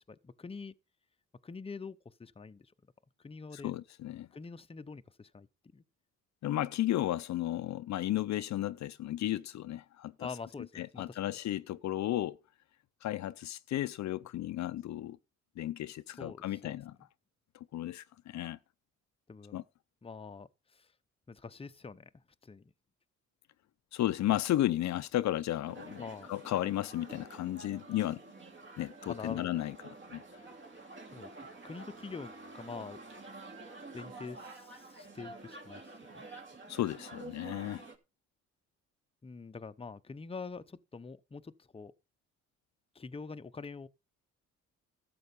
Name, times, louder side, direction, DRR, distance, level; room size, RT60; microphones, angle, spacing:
voice 1, 0.1-0.7 1.4-2.7 3.2-3.7 4.3-5.5 5.7-5.8 10.2-11.2 16.1-16.7 19.3-19.6 20.0-20.9 21.3-22.1 22.4-22.7 26.0-26.3 29.1-29.5 31.1-31.3 31.6-33.0 33.9-35.8 36.1-36.2 39.2-41.9 42.9-43.9, left 4 dB, 20° left, 0.8 m, -45 dB
voice 2, 3.5-4.3 6.4-10.3 10.8-12.4 13.0-15.2 15.6-16.9 17.7-18.6 19.5-19.6 23.9-26.0 26.3-28.2 28.8-29.7 30.1-30.2 36.7-37.8, left 14 dB, 65° left, 0.6 m, -33 dB
sound 1, 25.7-38.0, right 3 dB, 40° right, 2.7 m, -49 dB
12.5 x 7.7 x 5.4 m
cardioid pair, 90°, 30 cm